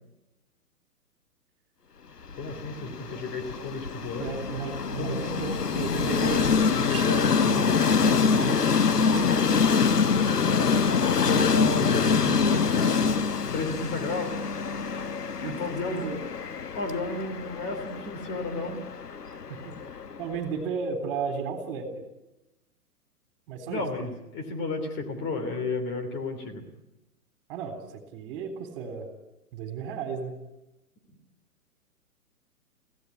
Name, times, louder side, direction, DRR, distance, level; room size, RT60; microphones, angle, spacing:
Train, 2.3-20.4, left 5 dB, 80° left, 1.2 m, -25 dB
voice 1, 2.3-4.3 4.9-5.4 6.8-7.8 8.3-8.6 11.0-13.0 13.5-14.3 14.9-15.0 15.4-16.1 16.7-18.8 23.6-26.6, left 3 dB, 25° left, 5 dB, 3.2 m, -33 dB
voice 2, 4.2-7.1 8.2-8.5 8.8-9.6 15.4-16.2 19.3-19.7 20.2-21.9 23.5-23.8 27.5-29.1 29.5-30.3, right 5 dB, 35° right, 8 dB, 3.7 m, -34 dB
24.5 x 16.5 x 9.9 m, 0.96 s
figure-of-eight pair, 120°, 47 cm